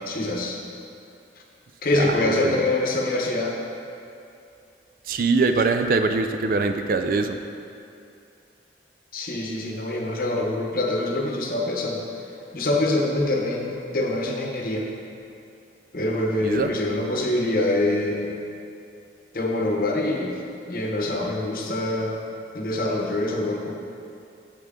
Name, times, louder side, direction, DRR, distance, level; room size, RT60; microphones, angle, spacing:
voice 1, 0.1-0.6 1.8-3.6 9.1-12.0 12.5-14.9 15.9-18.3 19.3-20.3 20.7-22.2 22.5-23.7, left 2 dB, 50° left, 0 dB, 0.9 m, -25 dB
voice 2, 1.9-2.6 5.1-7.4 16.4-16.7, right 3 dB, 50° right, 7 dB, 0.4 m, -23 dB
8.4 x 7.5 x 3.7 m, 2.6 s
head